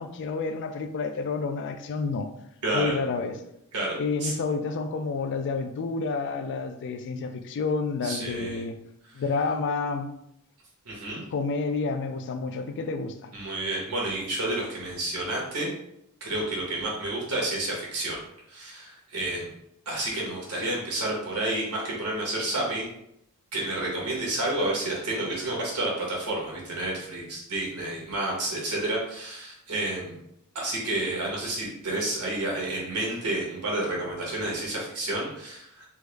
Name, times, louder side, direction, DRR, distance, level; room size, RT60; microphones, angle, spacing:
voice 1, 0.0-2.3 2.7-3.3 4.0-8.8 9.1-10.1 11.3-13.3, left 4 dB, 55° left, 0.3 m, -29 dB
voice 2, 2.6-3.0 3.7-4.3 8.0-8.6 10.8-11.2 13.3-15.7 16.2-18.2 18.5-19.5 19.8-22.9 23.5-30.2 30.5-35.8, right 2 dB, 85° right, 1.1 m, -30 dB
3.4 x 2.1 x 3.2 m
head